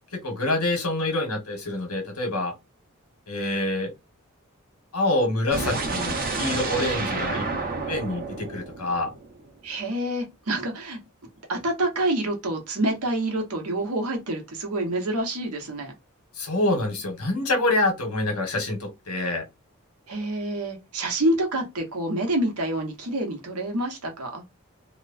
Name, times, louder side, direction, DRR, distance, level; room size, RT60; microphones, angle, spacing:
voice 1, 0.1-2.5 3.3-3.9 4.9-7.4 7.9-9.1 16.4-19.4, left 2 dB, 85° left, 1.3 m, -26 dB
sound 1, 5.5-9.5, right 3 dB, 45° right, 0.8 m, -30 dB
voice 2, 9.6-11.0 11.5-15.9 20.1-24.4, right 1 dB, 85° right, 1.0 m, -27 dB
3.0 x 2.1 x 2.5 m
head